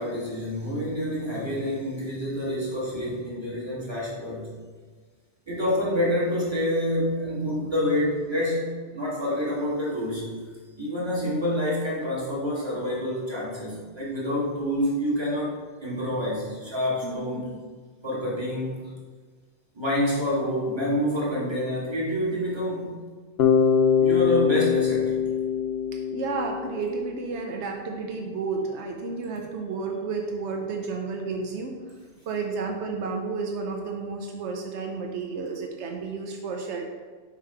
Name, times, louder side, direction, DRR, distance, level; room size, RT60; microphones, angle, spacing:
voice 1, 0.0-4.5 5.5-10.3 10.8-17.5 18.0-18.9 19.7-22.9 24.0-25.2, equal, 25° right, -7 dB, 1.7 m, -27 dB
voice 2, 17.0-17.6 26.1-31.8 32.3-36.8, right 4 dB, 80° right, 2 dB, 0.9 m, -31 dB
Bass guitar, 23.4-27.3, left 7 dB, 70° left, 0.8 m, -23 dB
6.6 x 3.0 x 4.8 m, 1.5 s
omnidirectional pair, 1.1 m